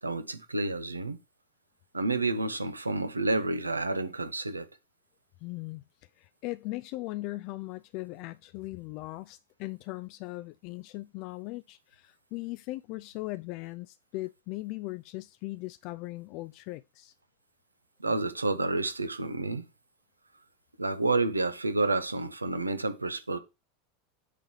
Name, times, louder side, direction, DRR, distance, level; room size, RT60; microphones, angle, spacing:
voice 1, 0.0-1.2 1.9-4.7 18.0-19.7 20.8-23.4, right 2 dB, 80° right, 0.8 m, -29 dB
voice 2, 5.4-5.8 6.2-17.1, left 20 dB, 45° left, 0.3 m, -39 dB
8.2 x 3.7 x 4.6 m
figure-of-eight pair, 85°, 0 cm